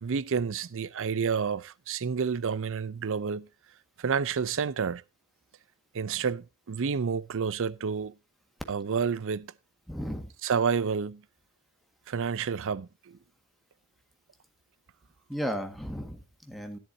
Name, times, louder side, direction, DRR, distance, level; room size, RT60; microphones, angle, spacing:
voice 1, 0.0-3.5 4.0-5.0 5.9-8.1 8.7-9.5 10.4-11.2 12.1-13.2, right 6 dB, 65° right, 0.5 m, -29 dB
voice 2, 9.9-10.3 15.3-16.8, equal, ahead, 1.6 m, -35 dB
13.0 x 10.5 x 2.7 m
head